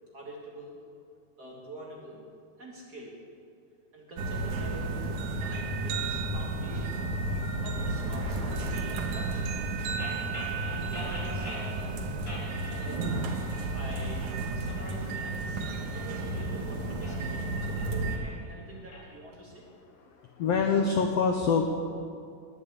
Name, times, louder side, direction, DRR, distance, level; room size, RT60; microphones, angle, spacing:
voice 1, 0.1-0.8 1.4-2.2 2.6-3.3 3.9-5.1 5.4-7.1 7.6-9.5 10.7-11.9 12.7-13.1 13.4-19.7, right 1 dB, 35° right, -3 dB, 2.1 m, -45 dB
sound 1, 4.2-18.2, right 2 dB, 65° right, 2.6 m, -32 dB
sound 2, 10.0-11.7 12.2-13.2 13.5-14.1 14.6-16.4 16.9-19.0, equal, 25° left, 4.7 m, -43 dB
voice 2, 20.1-21.6, left 5 dB, 70° left, 4 dB, 1.5 m, -25 dB
20.0 x 7.6 x 8.4 m, 2.4 s
omnidirectional pair, 4.0 m